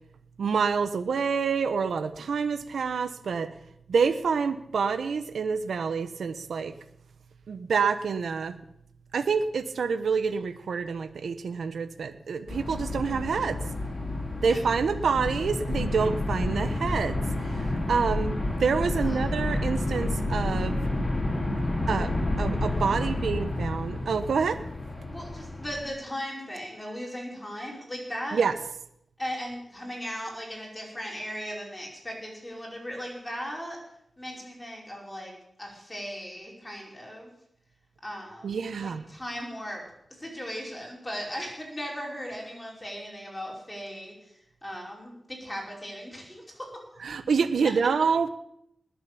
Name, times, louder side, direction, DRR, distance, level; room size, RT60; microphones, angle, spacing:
voice 1, 0.4-3.5 3.9-6.7 7.5-8.5 9.1-13.6 14.4-17.2 17.6-18.3 18.6-20.8 21.9-22.1 22.4-24.6 28.3-28.5 38.4-39.0 47.0-48.3, right 5 dB, 80° right, 11 dB, 1.0 m, -27 dB
sound 1, 12.5-25.8, left 2 dB, 25° left, 3.9 m, -30 dB
voice 2, 25.1-28.4 29.2-33.8 34.2-35.3 35.6-37.3 38.0-39.8 40.2-46.8, equal, 10° left, -2 dB, 5.2 m, -37 dB
20.0 x 7.5 x 8.3 m, 0.77 s
wide cardioid pair, 150°, 0 cm